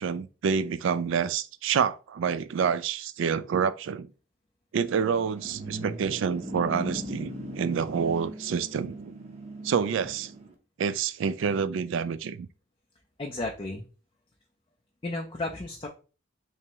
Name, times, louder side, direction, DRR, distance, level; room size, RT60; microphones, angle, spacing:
voice 1, 0.0-4.1 4.7-9.1 9.6-10.3 10.8-12.5, right 6 dB, 65° right, 0.3 m, -28 dB
sound 1, 4.9-10.5, right 1 dB, 30° right, 0.6 m, -39 dB
voice 2, 13.2-13.8 15.0-15.9, left 2 dB, 25° left, 0.4 m, -33 dB
3.4 x 3.0 x 2.8 m
head